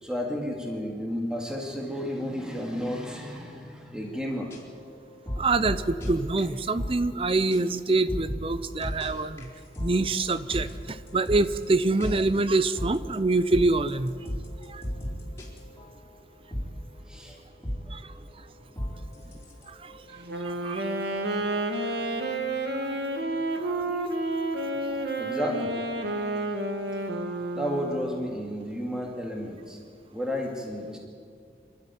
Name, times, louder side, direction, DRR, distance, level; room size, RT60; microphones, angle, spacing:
voice 1, 0.0-4.6 17.1-17.4 24.1-24.3 25.2-25.8 27.5-29.8 30.1-31.0, equal, 5° right, 0 dB, 2.3 m, -32 dB
sound 1, 4.5-7.2 7.5-7.6 7.9-16.2 16.5-21.3, equal, 15° left, 4.1 m, -37 dB
voice 2, 5.4-9.5 9.8-14.3 14.7-14.9 17.9-18.4 19.7-20.9 22.7-23.0 23.6-23.8 24.9-25.0 26.2-26.3, right 3 dB, 30° right, 13 dB, 0.7 m, -26 dB
Wind instrument woodwind instrument, 20.2-28.3, right 1 dB, 65° right, 2.0 m, -30 dB
26.5 x 12.5 x 9.4 m, 2.3 s
head